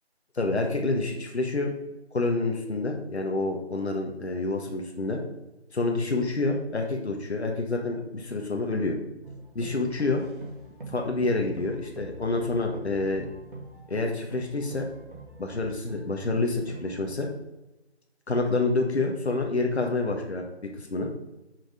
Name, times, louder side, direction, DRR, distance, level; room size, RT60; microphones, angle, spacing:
voice 1, 0.3-1.7 2.1-5.2 5.7-9.0 9.5-10.2 10.9-13.3 13.9-14.9 15.4-17.3 18.3-20.4 20.7-21.1, left 3 dB, 75° left, 2 dB, 1.5 m, -28 dB
sound 1, 9.2-17.0, right 3 dB, 50° right, 1.9 m, -44 dB
6.6 x 6.4 x 4.9 m, 0.99 s
figure-of-eight pair, 175°, 33 cm